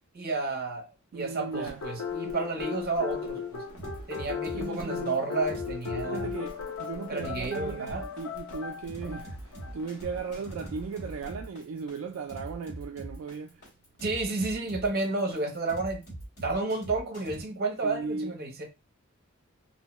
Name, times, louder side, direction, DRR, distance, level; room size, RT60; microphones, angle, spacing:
voice 1, 0.1-0.9 1.1-3.6 4.1-6.3 7.1-8.1 14.0-16.0 16.4-18.6, right 3 dB, 45° right, 0.7 m, -31 dB
voice 2, 1.1-1.8 4.5-5.2 6.0-9.4 9.7-13.6 17.8-18.3, right 5 dB, 70° right, 0.3 m, -37 dB
sound 1, 1.5-11.3, left 6 dB, 70° left, 0.8 m, -37 dB
sound 2, 3.8-17.4, right 1 dB, 50° left, 1.8 m, -42 dB
2.7 x 2.1 x 3.0 m
head